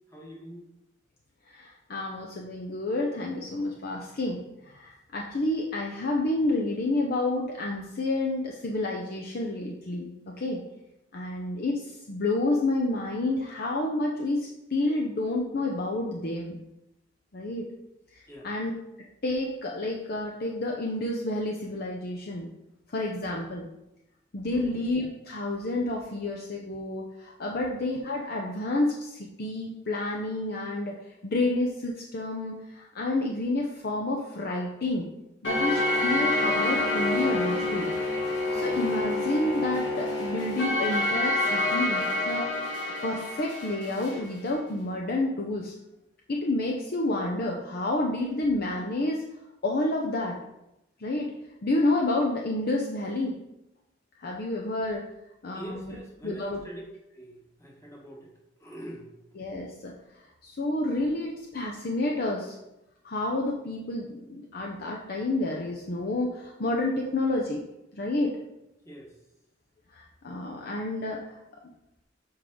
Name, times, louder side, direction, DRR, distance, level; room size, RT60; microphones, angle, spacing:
voice 1, 0.1-0.7 18.3-18.5 24.5-24.8 55.5-56.8 57.1-58.3 58.6-59.1 68.8-69.1, right 1 dB, 15° left, -2 dB, 1.4 m, -43 dB
voice 2, 1.5-4.4 4.7-10.6 11.1-16.6 17.3-17.6 18.1-18.7 19.2-22.5 22.9-23.7 24.3-31.0 31.2-35.1 35.4-37.9 38.5-42.5 43.0-45.7 46.3-49.3 49.6-50.4 51.0-51.3 51.6-53.4 54.2-55.0 55.4-56.0 56.2-56.6 59.4-59.9 60.4-62.5 63.0-67.6 67.9-68.4 69.9-71.2, left 2 dB, 55° left, 0 dB, 0.7 m, -29 dB
sound 1, 35.4-44.2, left 2 dB, 80° left, 1.6 m, -27 dB
7.2 x 4.9 x 3.8 m, 0.89 s
head